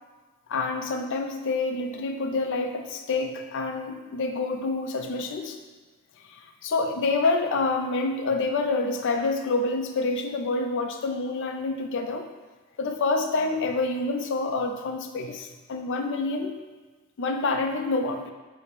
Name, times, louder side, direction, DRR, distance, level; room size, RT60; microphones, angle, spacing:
voice 1, 0.5-5.6 6.3-12.3 12.8-16.5 17.2-18.3, left 3 dB, 55° left, 5 dB, 0.4 m, -27 dB
6.0 x 2.1 x 4.1 m, 1.3 s
head